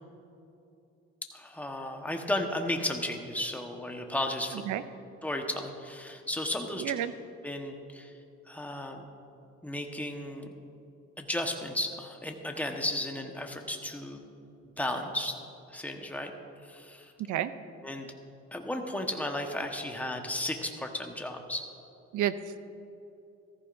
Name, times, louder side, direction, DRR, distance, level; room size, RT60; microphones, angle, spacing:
voice 1, 1.3-4.6 5.2-6.9 7.4-8.1 8.4-9.0 9.6-10.5 11.2-14.2 14.8-15.4 15.7-16.3 16.6-17.1 17.8-18.1 18.5-21.6, left 1 dB, 5° left, 3 dB, 1.2 m, -34 dB
voice 2, 4.5-4.8 6.8-7.1 17.3-17.5 22.1-22.6, right 11 dB, 80° right, 13 dB, 0.6 m, -30 dB
14.5 x 14.5 x 2.6 m, 2.7 s
cardioid pair, 90°, 30 cm